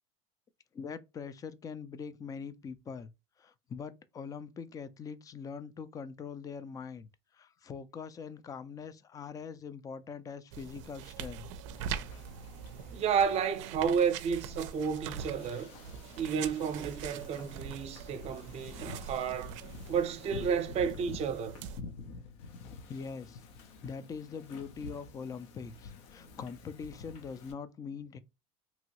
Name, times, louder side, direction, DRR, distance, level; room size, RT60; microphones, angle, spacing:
voice 1, 0.7-3.1 3.4-11.5 22.9-23.4 23.8-28.2, left 6 dB, 25° left, 0.3 m, -43 dB
sound 1, 10.5-21.8, right 8 dB, 80° right, 0.4 m, -43 dB
Wind / Ocean, 11.7-27.5, left 3 dB, 75° left, 0.7 m, -49 dB
voice 2, 12.9-15.7 16.2-19.5 19.9-21.6, right 7 dB, 45° right, 0.6 m, -31 dB
2.9 x 2.6 x 2.9 m
supercardioid pair, 110°, 15 cm